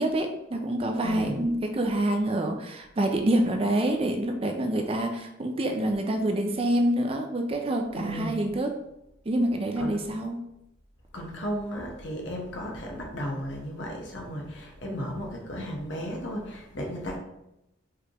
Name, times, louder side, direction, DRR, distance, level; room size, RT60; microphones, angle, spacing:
voice 1, 0.0-8.8 9.3-10.4, right 1 dB, 30° right, 4 dB, 0.4 m, -27 dB
voice 2, 1.0-1.4 7.9-8.4 9.8-10.0 11.1-17.2, equal, 60° left, 0 dB, 1.0 m, -34 dB
4.8 x 3.3 x 2.9 m, 0.86 s
head